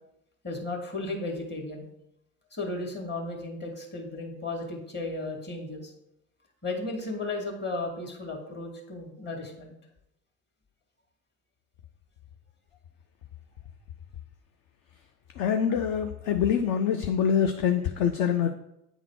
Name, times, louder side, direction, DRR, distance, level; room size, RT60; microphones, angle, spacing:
voice 1, 0.4-1.8 2.5-5.9 6.6-9.7 15.7-15.8, left 2 dB, 20° left, 1 dB, 2.0 m, -35 dB
voice 2, 15.4-18.5, left 8 dB, 45° left, 6 dB, 0.7 m, -25 dB
9.0 x 3.8 x 4.7 m, 0.84 s
figure-of-eight pair, 70°, 47 cm